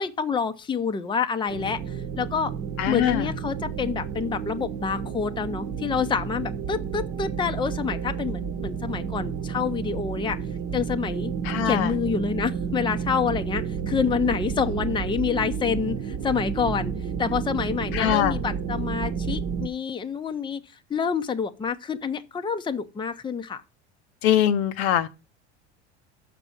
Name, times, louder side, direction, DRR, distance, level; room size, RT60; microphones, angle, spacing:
voice 1, 0.0-2.5 2.9-10.4 10.7-11.3 11.6-16.9 17.2-20.6 20.9-23.6, left 6 dB, 15° left, 0.7 m, -27 dB
sound 1, 1.5-19.7, right 7 dB, 45° right, 1.0 m, -31 dB
voice 2, 2.8-3.3 11.5-11.9 17.9-18.4 24.2-25.1, left 11 dB, 65° left, 0.8 m, -22 dB
6.1 x 5.8 x 5.4 m
hypercardioid pair, 85°, 34 cm